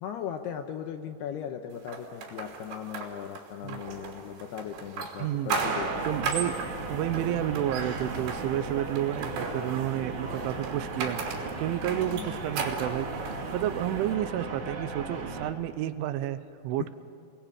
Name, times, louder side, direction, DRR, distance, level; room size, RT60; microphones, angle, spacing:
voice 1, 0.0-6.0 11.9-12.4, left 9 dB, 75° left, 6 dB, 2.5 m, -38 dB
sound 1, 1.9-14.1, right 4 dB, 65° right, 5.1 m, -36 dB
voice 2, 5.2-5.5 6.1-6.6 6.9-11.2 11.6-17.0, right 13 dB, 80° right, 12 dB, 3.2 m, -31 dB
sound 2, 5.5-15.5, right 3 dB, 45° right, 3.0 m, -37 dB
29.0 x 21.0 x 8.8 m, 2.4 s
omnidirectional pair, 5.7 m